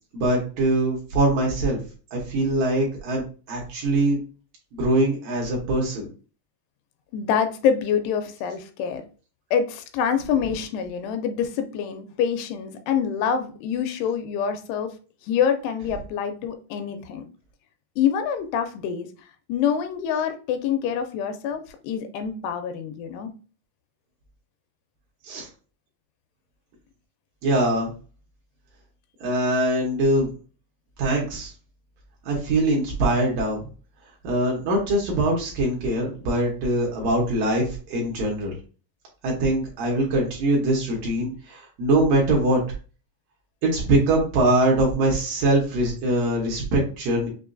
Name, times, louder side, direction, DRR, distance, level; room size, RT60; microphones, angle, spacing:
voice 1, 0.1-1.8 2.1-3.2 3.5-4.2 4.7-6.1 25.2-25.5 27.4-27.9 29.2-30.3 31.0-31.5 32.3-33.6 34.2-38.5 39.2-42.6 43.6-47.3, right 1 dB, 70° right, -2 dB, 2.3 m, -22 dB
voice 2, 7.1-9.0 9.5-14.9 15.2-17.2 18.0-19.1 19.5-23.3, left 7 dB, 85° left, 7 dB, 2.6 m, -26 dB
6.2 x 2.5 x 2.5 m, 0.37 s
omnidirectional pair, 4.7 m